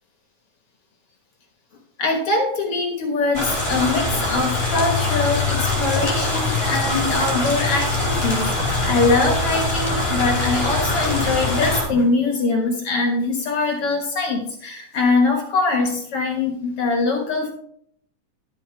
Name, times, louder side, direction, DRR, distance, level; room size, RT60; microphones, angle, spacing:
voice 1, 2.0-17.5, left 3 dB, 55° left, 3 dB, 2.1 m, -22 dB
sound 1, 3.3-11.8, left 2 dB, 20° left, 4.8 m, -22 dB
11.5 x 9.2 x 3.3 m, 0.66 s
omnidirectional pair, 3.4 m